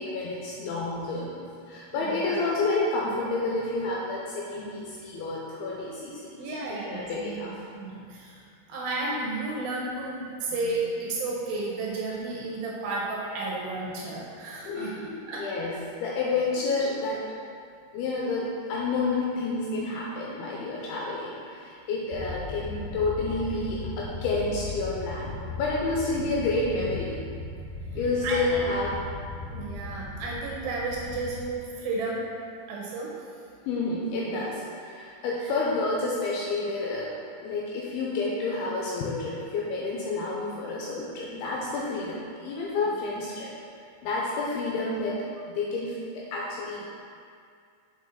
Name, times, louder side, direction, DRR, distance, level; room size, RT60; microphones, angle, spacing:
voice 1, 0.0-6.3 6.7-7.5 14.6-17.2 17.9-25.3 25.6-27.2 28.0-28.9 33.7-37.1 37.4-43.5 44.0-46.9, left 3 dB, 80° left, -5 dB, 2.4 m, -29 dB
voice 2, 1.9-2.4 6.4-8.4 8.7-14.9 15.3-15.5 23.2-23.3 28.2-28.6 29.3-32.2 32.7-33.1 42.9-43.1, right 2 dB, 75° right, -4 dB, 2.2 m, -33 dB
sound 1, 22.1-32.2, left 3 dB, 65° left, 1.9 m, -38 dB
6.0 x 5.4 x 3.8 m, 2.3 s
omnidirectional pair, 4.9 m